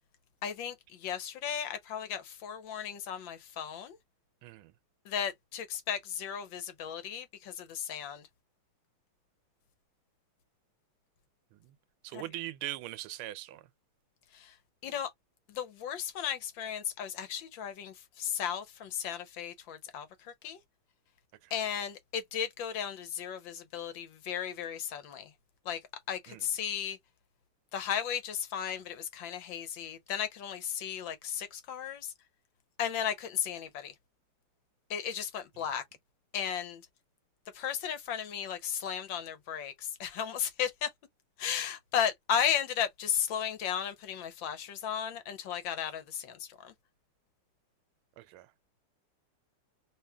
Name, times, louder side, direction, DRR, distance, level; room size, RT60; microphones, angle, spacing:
voice 1, 0.4-0.7 1.0-4.0 5.1-8.2 12.1-12.2 14.3-14.5 14.8-15.1 15.5-20.1 20.4-20.6 21.5-25.3 25.7-25.8 26.1-27.0 27.7-32.1 32.8-33.9 34.9-35.8 36.3-36.8 37.5-39.7 40.0-40.9 41.4-46.7, left 9 dB, 70° left, 1.4 m, -35 dB
voice 2, 4.4-4.7 12.0-13.6 26.3-26.4 48.2-48.5, right 14 dB, 85° right, 1.4 m, -40 dB
3.2 x 2.8 x 3.4 m
omnidirectional pair, 2.3 m